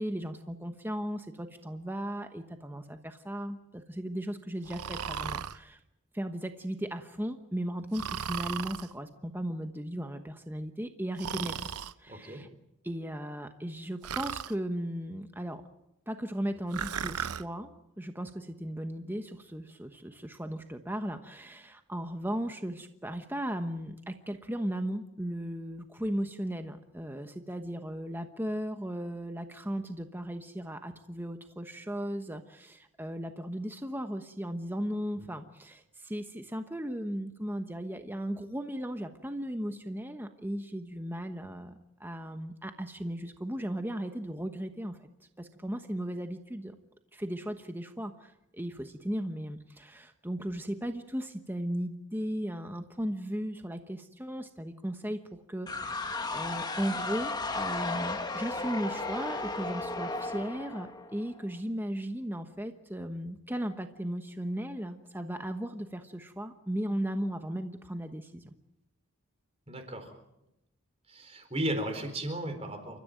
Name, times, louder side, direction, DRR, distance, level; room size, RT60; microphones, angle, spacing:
voice 1, 0.0-5.8 6.1-11.6 12.0-12.5 12.8-15.6 16.1-17.7 18.0-45.0 45.4-46.7 47.1-68.5, equal, 10° right, 7 dB, 1.1 m, -36 dB
Breathing, 4.7-5.6 7.9-8.9 11.2-11.9 14.0-14.5 16.7-17.4, right 7 dB, 90° right, 0.7 m, -36 dB
voice 2, 12.1-12.5 69.7-70.1 71.1-73.0, right 1 dB, 25° right, 6 dB, 4.3 m, -35 dB
sound 1, 55.7-61.4, left 3 dB, 20° left, 1.5 m, -35 dB
29.5 x 14.0 x 9.1 m, 0.88 s
head